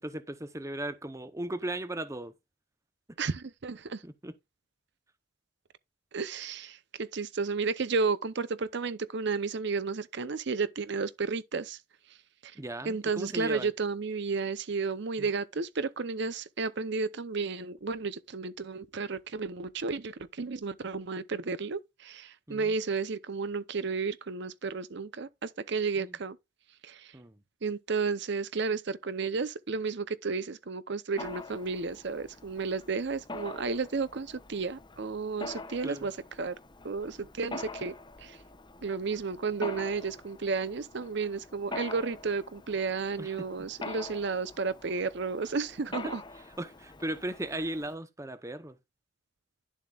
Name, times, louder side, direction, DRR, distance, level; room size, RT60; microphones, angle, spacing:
voice 1, 0.0-2.3 4.0-4.3 12.5-13.7 15.2-15.3 22.5-22.7 26.0-26.1 27.1-27.4 35.8-36.1 43.2-43.3 46.0-46.1 46.6-48.8, right 1 dB, 15° right, 0.8 m, -37 dB
voice 2, 3.2-4.0 6.1-11.8 12.1-12.2 12.4-12.6 12.8-26.4 26.8-27.1 27.6-36.6 36.8-38.4 38.8-46.2, right 4 dB, 55° right, 0.6 m, -32 dB
Mechanisms, 31.2-48.0, left 3 dB, 20° left, 0.8 m, -45 dB
11.5 x 7.3 x 2.4 m
head